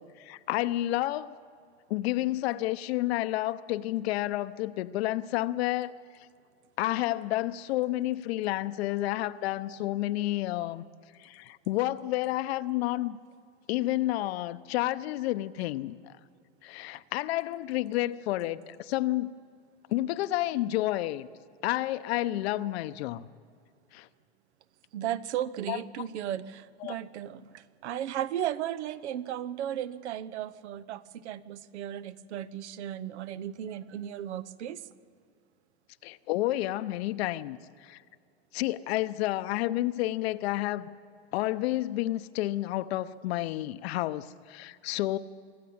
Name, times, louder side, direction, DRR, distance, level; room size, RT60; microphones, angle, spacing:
voice 1, 0.0-1.3 1.9-5.9 6.8-10.9 11.2-13.2 13.7-15.9 16.6-19.3 19.9-21.3 21.6-23.2 23.9-24.1 25.7-25.8 26.8-27.0 36.0-38.0 38.5-40.9 41.3-45.2, left 16 dB, 65° left, 0.8 m, -30 dB
voice 2, 24.9-34.9, right 11 dB, 80° right, 1.0 m, -35 dB
25.5 x 12.0 x 8.7 m
supercardioid pair, 140°, 33 cm